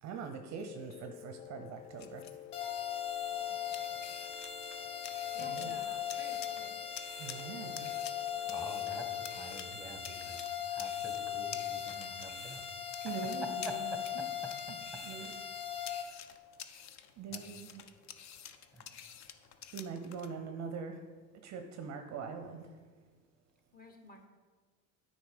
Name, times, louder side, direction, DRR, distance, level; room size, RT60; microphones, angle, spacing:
voice 1, 0.0-2.4 5.3-5.7 7.2-8.0 13.0-14.2 14.7-14.8 15.0-15.3 17.2-17.8 19.7-21.0 21.4-22.8, right 6 dB, 35° right, 6 dB, 0.6 m, -43 dB
sound 1, 0.6-9.7, left 11 dB, 90° left, 0.6 m, -52 dB
sound 2, 1.7-20.3, left 9 dB, 40° left, 0.6 m, -51 dB
sound 3, 2.5-16.0, left 9 dB, 70° left, 0.9 m, -39 dB
voice 2, 5.3-6.8 23.7-24.3, left 2 dB, 20° left, 3 dB, 1.2 m, -53 dB
voice 3, 8.5-12.6 13.0-15.3 15.8-16.1 17.3-17.4 18.7-18.9, right 1 dB, ahead, 4 dB, 1.2 m, -48 dB
9.3 x 4.1 x 5.1 m, 1.5 s
hypercardioid pair, 70°, 46 cm